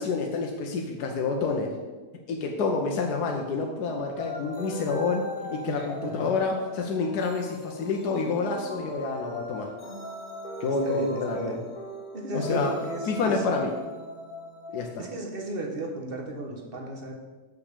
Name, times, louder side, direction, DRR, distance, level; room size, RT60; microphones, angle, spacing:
voice 1, 0.0-1.7 2.3-9.7 10.6-11.6 12.3-12.7 13.1-13.7 14.7-15.0, left 4 dB, 70° left, 1 dB, 1.4 m, -28 dB
sound 1, 4.2-14.9, left 1 dB, 30° left, 2.1 m, -39 dB
voice 2, 5.7-6.3 10.6-11.6 12.1-13.4 15.0-17.1, right 2 dB, 35° right, 1 dB, 1.3 m, -35 dB
6.6 x 5.9 x 6.6 m, 1.3 s
omnidirectional pair, 1.8 m